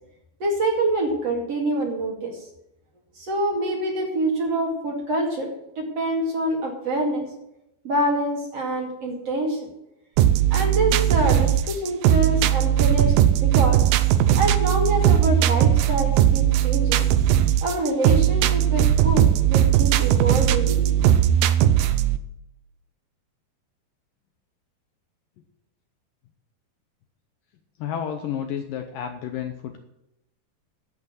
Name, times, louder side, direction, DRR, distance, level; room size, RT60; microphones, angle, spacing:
voice 1, 0.4-2.4 3.2-5.5 5.8-7.3 7.8-9.6 10.5-13.8 14.3-17.0 17.6-21.1, right 1 dB, 45° right, 1 dB, 2.9 m, -26 dB
sound 1, 10.2-22.2, right 11 dB, 80° right, 2.1 m, -19 dB
voice 2, 27.8-29.8, left 8 dB, 75° left, 6 dB, 2.2 m, -31 dB
11.0 x 8.2 x 7.9 m, 0.85 s
omnidirectional pair, 4.8 m